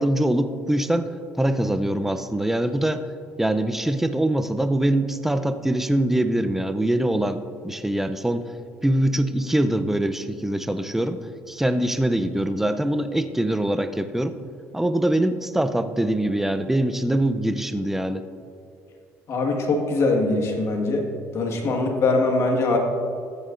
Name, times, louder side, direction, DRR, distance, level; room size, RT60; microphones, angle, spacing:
voice 1, 0.0-3.1 3.4-8.4 8.8-11.2 11.5-14.3 14.7-18.2, right 1 dB, 5° right, 10 dB, 0.6 m, -23 dB
voice 2, 19.3-21.1 21.3-22.8, left 3 dB, 55° left, 2 dB, 1.7 m, -22 dB
14.0 x 9.6 x 2.6 m, 2.4 s
supercardioid pair, 80°, 6 cm